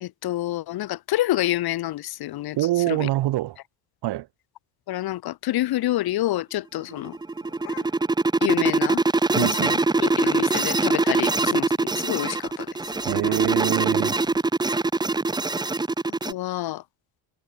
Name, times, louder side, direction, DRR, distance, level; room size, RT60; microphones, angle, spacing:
voice 1, 0.0-2.6 2.9-3.1 4.9-7.2 8.4-9.0 9.4-12.7 16.2-16.8, left 15 dB, 60° left, 1.2 m, -28 dB
voice 2, 2.6-3.6 4.0-4.3 9.3-9.8 13.0-14.2, right 15 dB, 70° right, 2.5 m, -25 dB
sound 1, 6.9-16.3, right 3 dB, 10° right, 0.8 m, -23 dB
sound 2, 7.0-8.3 8.7-8.8 9.1-9.4 9.7-9.9 10.2-10.4 10.9-11.5 12.4-14.5, left 17 dB, 80° left, 5.5 m, -48 dB
cardioid pair, 125°, 42 cm